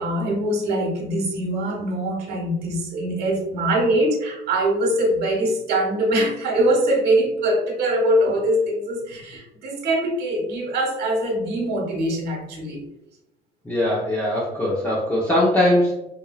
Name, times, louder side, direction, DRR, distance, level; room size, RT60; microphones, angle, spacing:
voice 1, 0.0-12.8, right 1 dB, 75° right, 1 dB, 1.4 m, -23 dB
voice 2, 13.6-15.9, left 1 dB, 10° left, -6 dB, 0.9 m, -20 dB
4.7 x 2.7 x 2.3 m, 0.86 s
cardioid pair, 110°, 17 cm